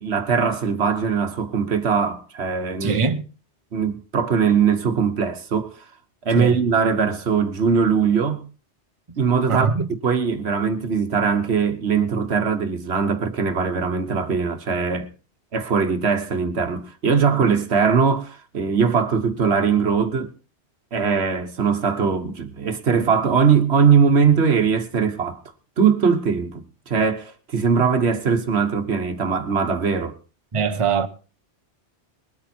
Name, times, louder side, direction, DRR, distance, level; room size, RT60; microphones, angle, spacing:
voice 1, 0.0-3.0 3.7-5.8 6.2-8.4 9.2-9.7 10.0-15.1 15.5-20.3 20.9-25.4 25.8-30.2, right 6 dB, 65° right, 1.4 m, -21 dB
voice 2, 2.8-3.2 6.4-6.6 9.5-9.9 30.5-31.1, right 5 dB, 30° right, 1.0 m, -22 dB
21.0 x 8.7 x 4.4 m
omnidirectional pair, 1.2 m